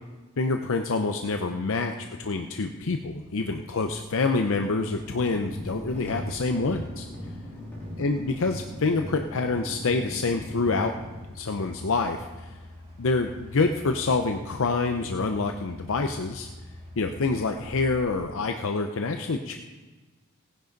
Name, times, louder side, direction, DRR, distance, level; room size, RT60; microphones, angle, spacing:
voice 1, 0.4-7.1 8.0-10.9 11.3-12.5 13.0-16.5 17.0-19.6, left 3 dB, 65° left, 5 dB, 0.6 m, -27 dB
sound 1, 3.1-18.2, left 1 dB, 25° right, 2.6 m, -47 dB
sound 2, 5.0-11.9, equal, 10° left, 3.5 m, -39 dB
18.0 x 10.5 x 4.0 m, 1.3 s
head